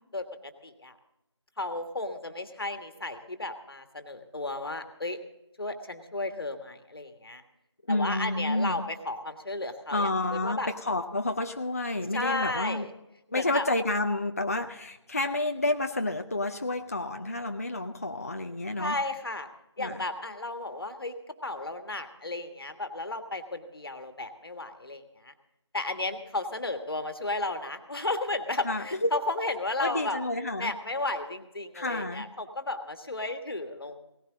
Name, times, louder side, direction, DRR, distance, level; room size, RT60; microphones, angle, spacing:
voice 1, 0.1-1.0 1.6-5.2 5.6-7.4 7.9-10.7 12.1-12.9 13.3-13.6 18.8-19.5 19.8-21.2 21.4-25.3 25.7-30.2 30.6-34.0, left 2 dB, 50° left, 8 dB, 1.5 m, -33 dB
voice 2, 7.9-8.8 9.9-12.9 13.3-19.0 19.8-20.0 28.6-29.1 29.8-30.7 31.7-32.3, left 2 dB, 30° left, 6 dB, 0.5 m, -30 dB
18.0 x 15.0 x 3.8 m, 0.94 s
figure-of-eight pair, 165°, 15 cm